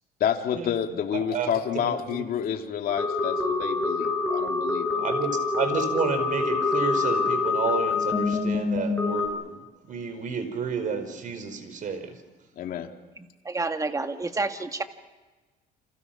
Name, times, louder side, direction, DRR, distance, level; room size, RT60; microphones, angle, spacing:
voice 1, 0.2-5.0 12.6-12.9, left 9 dB, 60° left, 4 dB, 2.5 m, -29 dB
voice 2, 1.1-2.5 5.0-12.2, right 5 dB, 50° right, 8 dB, 4.9 m, -31 dB
sound 1, 2.9-9.3, left 4 dB, 10° left, 7.8 m, -26 dB
voice 3, 13.5-14.8, right 3 dB, 20° right, 7 dB, 1.8 m, -29 dB
29.5 x 27.0 x 6.0 m, 1.2 s
cardioid pair, 110°, 17 cm